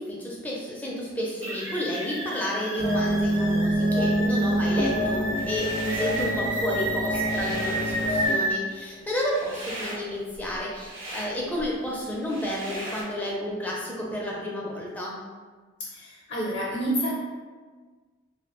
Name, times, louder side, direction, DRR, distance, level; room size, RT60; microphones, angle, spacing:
voice 1, 0.0-15.2, left 1 dB, 10° left, -4 dB, 0.4 m, -31 dB
sound 1, 1.4-8.5, right 1 dB, 65° right, 0.9 m, -32 dB
sound 2, 2.8-8.3, equal, 45° right, 0.5 m, -26 dB
sound 3, 5.3-6.4 6.8-13.0, right 1 dB, 85° right, 0.6 m, -39 dB
voice 2, 15.8-17.1, equal, 55° left, -5 dB, 0.6 m, -29 dB
2.3 x 2.0 x 2.9 m, 1.4 s
head